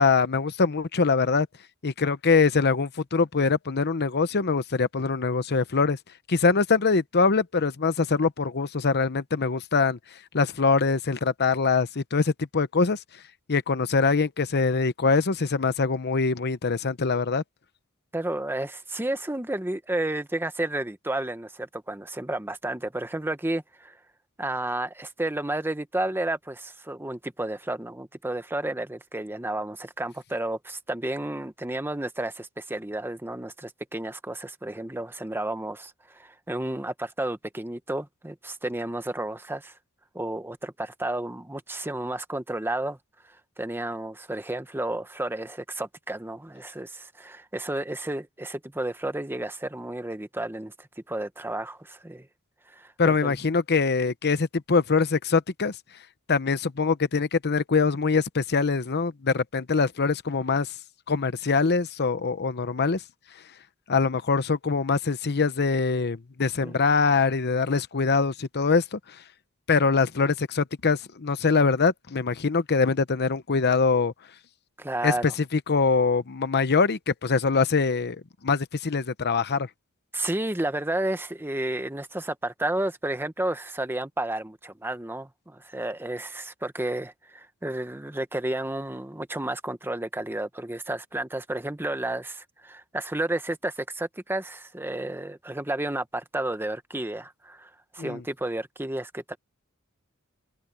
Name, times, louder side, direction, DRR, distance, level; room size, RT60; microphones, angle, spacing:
voice 1, 0.0-1.5 1.8-6.0 6.3-10.0 10.3-13.0 13.5-17.4 53.0-55.7 56.3-60.7 61.1-63.0 63.9-69.0 69.7-74.1 75.0-75.1 75.5-79.7 98.0-98.2, left 4 dB, 50° left, 0.8 m, -23 dB
voice 2, 18.1-24.0 24.4-39.7 40.1-43.0 43.3-52.3 52.7-53.3 66.6-66.7 74.8-75.3 80.1-99.4, right 1 dB, 10° right, 1.0 m, -32 dB
head